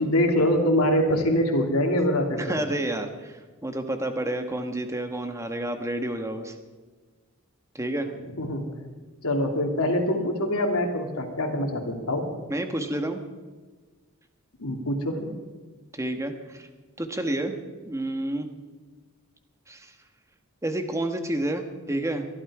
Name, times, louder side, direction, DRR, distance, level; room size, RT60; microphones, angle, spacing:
voice 1, 0.0-2.6 8.3-8.6 9.2-12.3 14.6-15.3, left 1 dB, 80° left, 2 dB, 2.7 m, -24 dB
voice 2, 2.4-6.5 7.7-8.1 12.5-13.2 15.9-16.7 17.0-17.5 17.9-18.5 19.7-19.9 20.6-22.3, right 1 dB, 15° right, 7 dB, 1.3 m, -29 dB
22.5 x 12.5 x 4.9 m, 1.4 s
head